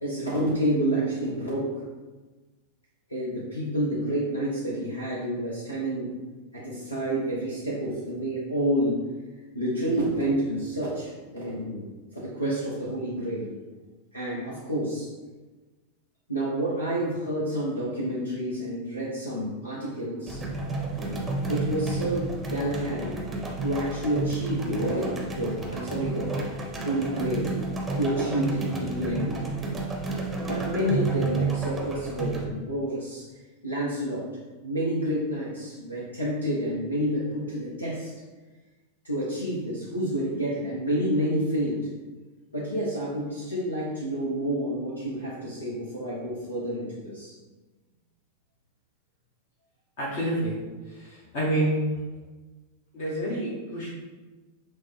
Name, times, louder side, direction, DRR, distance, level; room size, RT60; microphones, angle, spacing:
voice 1, 0.0-1.8 3.1-6.1 6.5-9.0 9.5-13.5 14.1-15.1 16.3-20.4 21.5-23.1 23.6-26.5 26.8-27.5 27.9-29.4 30.4-33.2 33.6-34.3 34.6-38.1 39.0-41.9 42.5-47.3, right 1 dB, 80° left, -6 dB, 0.7 m, -29 dB
sound 1, 20.3-32.5, right 3 dB, 15° right, 0.7 m, -31 dB
voice 2, 50.0-50.6 50.9-51.8 52.9-53.9, right 1 dB, 50° left, -5 dB, 0.9 m, -28 dB
6.0 x 2.1 x 3.2 m, 1.3 s
figure-of-eight pair, 90°, 0 cm